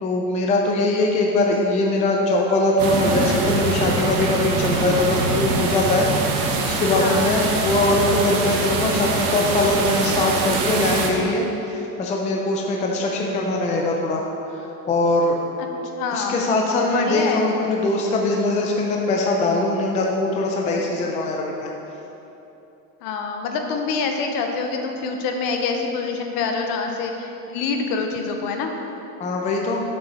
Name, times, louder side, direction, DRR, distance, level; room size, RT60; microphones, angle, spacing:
voice 1, 0.0-14.2 14.5-15.4 16.1-21.7 29.2-29.8, left 2 dB, 15° left, 0 dB, 0.4 m, -21 dB
sound 1, 2.8-11.1, right 3 dB, 50° right, 1.1 m, -24 dB
voice 2, 7.0-7.3 16.0-16.4 16.9-17.5 20.8-20.9 23.0-28.7, left 4 dB, 50° left, 3 dB, 0.9 m, -26 dB
7.1 x 6.5 x 4.2 m, 3.0 s
supercardioid pair, 140°, 45 cm